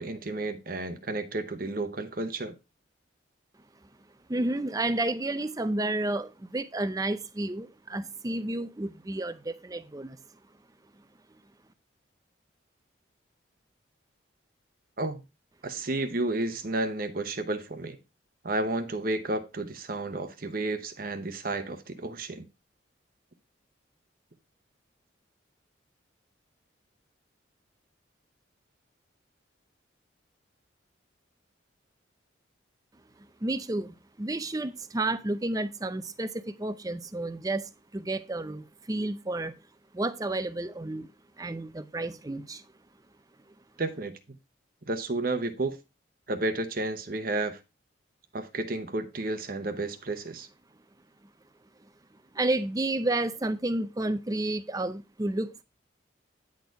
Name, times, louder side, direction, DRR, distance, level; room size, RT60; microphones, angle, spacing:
voice 1, 0.0-2.5 15.0-15.2 15.6-18.0 18.4-22.4 43.8-44.1 44.9-45.8 46.3-47.6 48.3-50.5, right 2 dB, 45° right, 0.9 m, -31 dB
voice 2, 4.3-10.2 33.4-39.5 39.9-41.1 41.4-42.6 52.3-55.6, right 2 dB, 20° right, 0.5 m, -31 dB
9.6 x 4.3 x 4.6 m
head